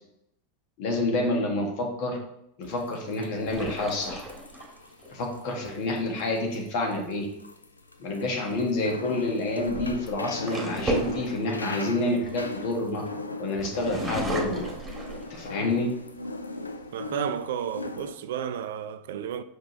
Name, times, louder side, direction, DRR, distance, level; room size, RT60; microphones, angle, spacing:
voice 1, 0.8-2.2 2.6-4.2 5.1-7.3 8.0-13.0 13.4-14.6 15.3-15.9, left 2 dB, 50° left, 1.8 m, -28 dB
sound 1, 2.6-18.1, left 2 dB, 85° left, 0.5 m, -38 dB
sound 2, 3.5-5.1 8.0-8.3 9.3-13.1 13.6-15.7 16.2-16.3 16.7-17.3, right 1 dB, 15° right, 1.8 m, -34 dB
voice 2, 16.9-19.4, right 9 dB, 65° right, 0.4 m, -32 dB
6.3 x 5.1 x 3.2 m
figure-of-eight pair, 90°, 0 cm